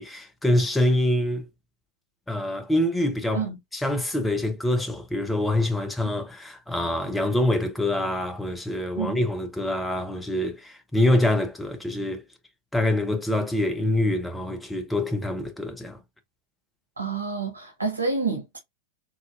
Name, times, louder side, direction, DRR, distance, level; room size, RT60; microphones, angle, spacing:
voice 1, 0.0-1.5 2.3-3.4 3.7-12.2 12.7-16.0, left 1 dB, 5° left, 0.8 m, -25 dB
voice 2, 17.0-18.6, right 4 dB, 80° right, 1.1 m, -29 dB
3.8 x 2.8 x 2.4 m
figure-of-eight pair, 90°, 0 cm